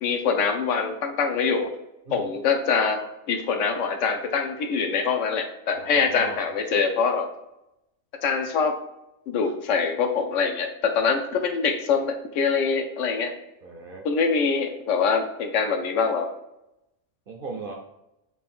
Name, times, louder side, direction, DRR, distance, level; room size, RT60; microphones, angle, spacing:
voice 1, 0.0-1.7 2.1-3.0 3.3-7.3 8.2-8.8 9.3-13.3 14.0-16.3, left 5 dB, 70° left, 5 dB, 0.9 m, -24 dB
voice 2, 5.7-6.4 9.4-9.5 13.6-14.0 17.3-17.7, right 3 dB, 55° right, 0 dB, 0.6 m, -37 dB
4.5 x 2.5 x 3.5 m, 0.88 s
omnidirectional pair, 1.4 m